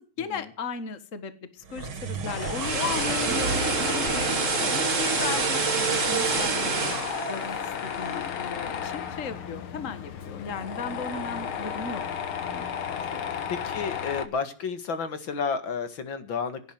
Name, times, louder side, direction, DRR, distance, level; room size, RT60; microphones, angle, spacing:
voice 1, 0.2-4.1 4.6-7.0 7.3-12.0 12.5-12.6 12.9-13.2, left 5 dB, 40° left, 12 dB, 1.9 m, -36 dB
sound 1, 1.6-6.0, right 4 dB, 85° right, 2.9 m, -37 dB
sound 2, 2.2-8.4 8.7-8.9, right 5 dB, 40° right, 2.0 m, -27 dB
Tools, 2.3-14.3, left 8 dB, 90° left, 2.4 m, -33 dB
voice 2, 13.5-16.6, left 5 dB, 70° left, 10 dB, 2.4 m, -31 dB
17.5 x 10.5 x 7.7 m, 0.41 s
omnidirectional pair, 2.2 m